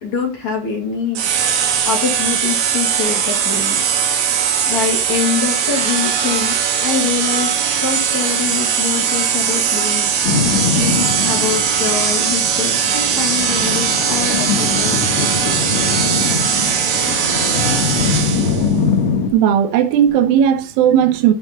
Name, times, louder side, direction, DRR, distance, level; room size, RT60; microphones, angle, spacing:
voice 1, 0.0-3.8 4.7-15.7, left 6 dB, 45° left, 3.1 m, -25 dB
sound 1, 1.1-18.7, right 7 dB, 60° right, 3.0 m, -19 dB
Boat Water vehicle, 10.2-19.3, left 5 dB, 80° left, 1.5 m, -22 dB
voice 2, 19.3-21.3, right 9 dB, 80° right, 3.6 m, -15 dB
15.0 x 5.1 x 4.1 m
omnidirectional pair, 5.6 m